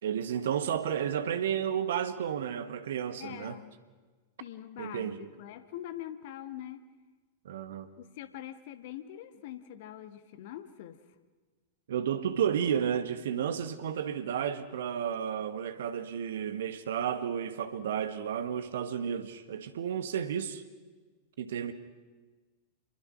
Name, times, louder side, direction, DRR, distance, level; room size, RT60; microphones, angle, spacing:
voice 1, 0.0-3.6 4.8-5.3 7.4-7.9 11.9-20.6 21.4-21.7, right 8 dB, 60° right, 1.6 m, -32 dB
voice 2, 3.2-3.7 4.4-6.8 8.0-11.0, left 12 dB, 50° left, 1.6 m, -43 dB
28.5 x 22.0 x 6.1 m
figure-of-eight pair, 90°, 0 cm